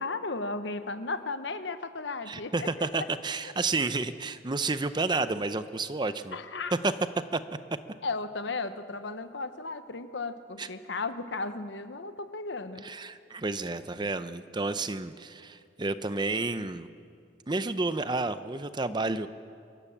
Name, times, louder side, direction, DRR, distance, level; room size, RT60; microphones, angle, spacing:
voice 1, 0.0-3.1 6.3-6.7 8.0-12.8, left 3 dB, 70° left, 10 dB, 1.1 m, -35 dB
voice 2, 2.3-6.4 6.8-6.9 7.3-7.4 10.6-10.7 12.8-16.9 17.5-19.3, right 3 dB, 25° right, 12 dB, 0.6 m, -30 dB
24.5 x 17.0 x 7.2 m, 2.3 s
head